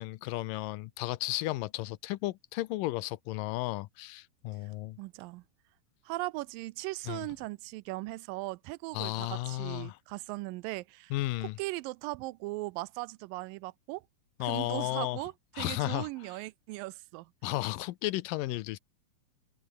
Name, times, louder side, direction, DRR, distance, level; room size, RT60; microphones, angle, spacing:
voice 1, 0.0-5.0 7.1-7.3 8.9-10.0 11.1-11.6 14.4-15.2 15.6-16.3 17.4-18.8, left 18 dB, 80° left, 2.4 m, -34 dB
voice 2, 5.0-5.4 6.1-11.1 11.4-14.0 14.4-17.3, right 21 dB, 90° right, 2.3 m, -38 dB
open air
omnidirectional pair, 3.9 m